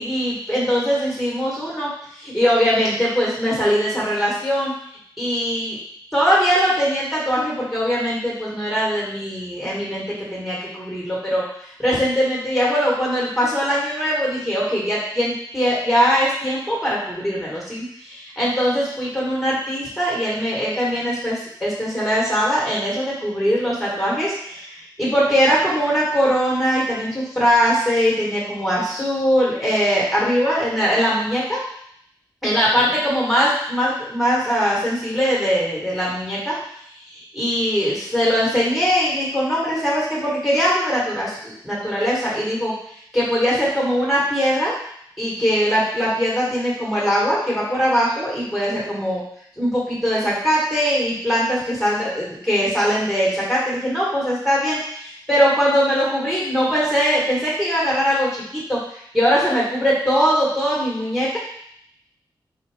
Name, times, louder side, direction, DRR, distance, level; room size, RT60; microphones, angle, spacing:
voice 1, 0.0-4.7 5.2-5.8 6.1-10.0 10.3-11.4 11.8-31.6 32.4-36.5 37.1-42.7 43.1-44.7 45.2-49.2 49.6-61.4, equal, ahead, -6 dB, 1.5 m, -21 dB
4.1 x 3.6 x 3.5 m, 0.70 s
wide cardioid pair, 115°, 8 cm